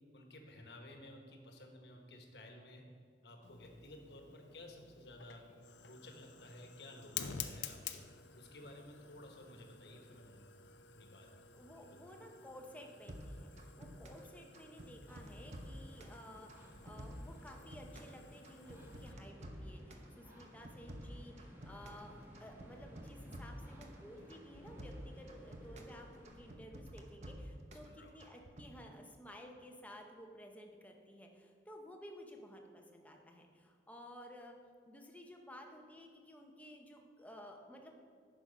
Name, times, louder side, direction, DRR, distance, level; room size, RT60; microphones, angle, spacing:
voice 1, 0.1-2.9 3.2-5.5 5.8-8.1 8.3-10.4 10.9-11.3 11.8-12.0 27.8-28.1, left 1 dB, 65° left, 3 dB, 1.3 m, -55 dB
Fire, 3.4-19.1, left 8 dB, 90° left, 0.6 m, -51 dB
voice 2, 11.5-13.5 13.8-34.6 34.9-37.9, equal, 10° left, 2 dB, 0.9 m, -54 dB
sound 1, 13.1-14.3 14.5-16.2 16.5-18.2 18.4-20.1 20.4-22.1 22.3-24.0 24.3-25.9 26.2-27.9 28.2-28.7, right 1 dB, 40° right, 0.9 m, -51 dB
sound 2, 15.1-26.5, equal, 10° right, 1.5 m, -59 dB
9.7 x 6.2 x 5.0 m, 2.3 s
head